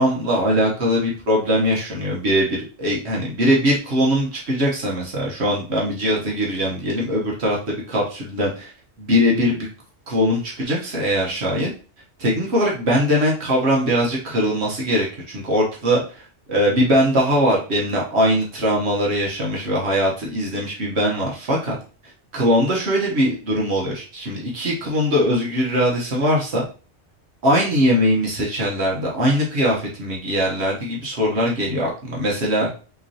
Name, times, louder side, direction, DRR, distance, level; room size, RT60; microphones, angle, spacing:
voice 1, 0.0-8.7 9.0-9.7 10.1-11.7 12.2-16.2 16.5-21.8 22.3-26.6 27.4-32.7, equal, 70° right, -3 dB, 1.3 m, -21 dB
5.7 x 3.1 x 2.8 m, 0.38 s
omnidirectional pair, 1.2 m